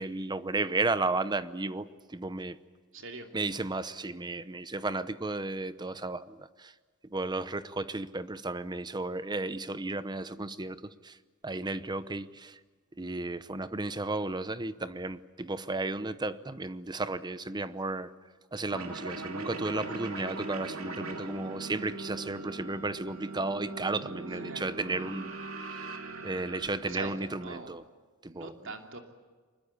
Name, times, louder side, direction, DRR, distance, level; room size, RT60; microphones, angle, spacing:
voice 1, 0.0-2.6 3.3-6.7 7.0-11.2 11.4-12.6 13.0-18.1 18.5-25.3 26.2-27.8 28.2-28.5, right 2 dB, 20° right, 14 dB, 0.8 m, -34 dB
voice 2, 2.9-3.3 24.3-24.7 26.9-27.7 28.3-29.0, right 3 dB, 65° right, 4 dB, 3.0 m, -42 dB
sound 1, 18.7-27.7, right 3 dB, 85° right, 2.7 m, -41 dB
24.5 x 21.0 x 8.6 m, 1.5 s
head